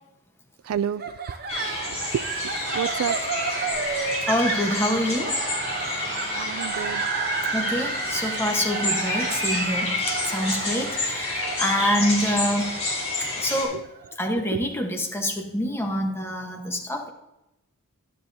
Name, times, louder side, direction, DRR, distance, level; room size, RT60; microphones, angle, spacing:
voice 1, 0.7-1.1 2.1-3.3 6.3-7.0 13.7-13.8 14.5-14.6, right 8 dB, 80° right, 17 dB, 0.3 m, -29 dB
sound 1, 1.0-14.2, right 5 dB, 45° right, 0.8 m, -32 dB
sound 2, 1.5-13.6, left 2 dB, 30° left, 3.9 m, -29 dB
voice 2, 4.3-5.4 7.5-12.7 13.2-13.8 14.2-17.1, equal, 10° left, 2 dB, 1.1 m, -26 dB
12.0 x 9.9 x 2.7 m, 0.93 s
head